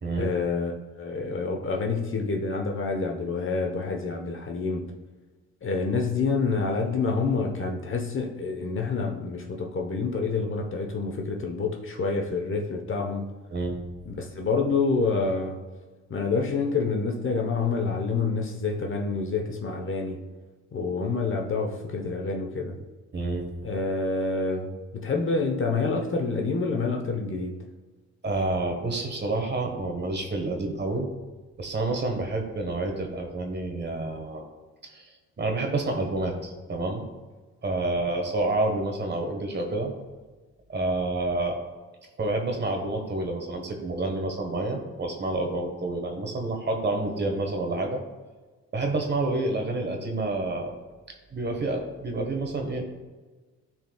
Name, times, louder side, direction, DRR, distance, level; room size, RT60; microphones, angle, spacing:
voice 1, 0.1-4.9 5.6-13.3 14.1-15.6 16.1-20.2 20.7-22.8 23.6-27.6, left 4 dB, 40° left, 2 dB, 1.1 m, -27 dB
voice 2, 23.1-23.5 28.2-31.1 31.6-34.4 34.9-35.1 35.4-37.1 37.6-39.9 40.7-41.6 42.2-48.0 48.7-50.7 51.3-52.8, right 2 dB, 35° right, 3 dB, 1.4 m, -28 dB
13.0 x 4.6 x 2.4 m, 1.3 s
cardioid pair, 90°, 30 cm